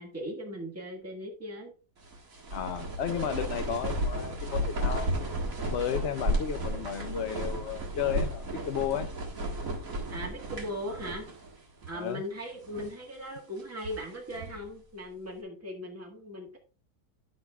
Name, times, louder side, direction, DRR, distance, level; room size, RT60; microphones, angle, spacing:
voice 1, 0.0-1.7 10.1-11.3 11.9-16.6, equal, 10° right, 1.6 m, -38 dB
sound 1, 2.0-11.5 11.8-11.9 12.5-13.0 13.6-14.7, equal, 50° right, 2.1 m, -33 dB
voice 2, 2.5-5.1 5.7-9.1 11.9-12.2, left 9 dB, 65° left, 0.6 m, -33 dB
10.5 x 7.5 x 2.3 m
omnidirectional pair, 1.9 m